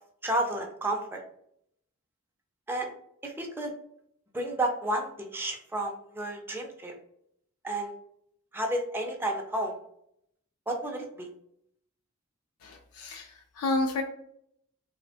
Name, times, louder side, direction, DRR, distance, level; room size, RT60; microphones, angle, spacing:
voice 1, 0.2-1.2 2.7-2.9 3.2-3.7 4.3-6.9 7.6-7.9 8.5-9.8 10.7-11.3, right 1 dB, 10° right, 2 dB, 0.3 m, -31 dB
voice 2, 12.6-14.0, left 2 dB, 80° left, 3 dB, 0.4 m, -30 dB
2.9 x 2.1 x 2.7 m, 0.72 s
head